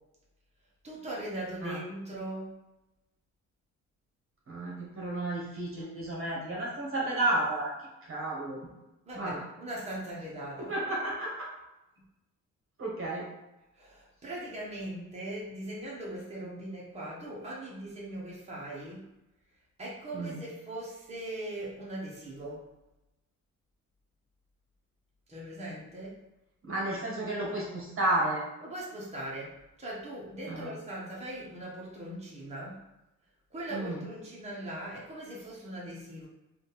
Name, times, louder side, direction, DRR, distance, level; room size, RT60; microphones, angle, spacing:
voice 1, 0.8-2.6 5.8-5.9 9.0-10.7 13.7-19.1 19.8-22.7 25.3-26.2 28.6-32.8 33.5-36.3, right 1 dB, 20° right, -6 dB, 1.3 m, -40 dB
voice 2, 4.5-7.7 8.1-8.7 9.1-9.4 10.6-11.5 12.8-13.3 20.1-20.4 26.6-28.4 30.5-30.7 33.7-34.0, right 2 dB, 45° right, -4 dB, 1.4 m, -32 dB
3.6 x 2.7 x 4.2 m, 0.95 s
cardioid pair, 90°, 30 cm